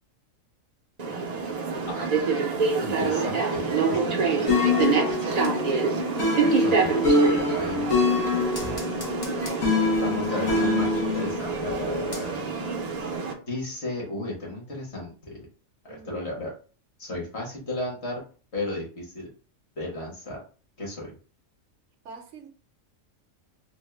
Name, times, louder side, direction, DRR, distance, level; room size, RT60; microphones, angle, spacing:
sound 1, 1.0-13.3, right 5 dB, 50° right, 0.5 m, -27 dB
voice 1, 2.8-4.5 6.6-8.0 10.0-12.5 13.5-15.5 15.8-16.5 17.0-18.2 18.5-19.3 19.8-20.4 20.8-21.1, left 1 dB, 55° left, 1.4 m, -34 dB
voice 2, 4.3-6.0 15.9-16.2 22.0-22.5, right 6 dB, 70° right, 0.9 m, -40 dB
sound 2, 4.5-11.3, left 3 dB, 85° left, 1.3 m, -25 dB
sound 3, 7.6-12.7 13.0-13.1, equal, 35° left, 0.4 m, -38 dB
3.4 x 2.0 x 3.2 m
omnidirectional pair, 1.4 m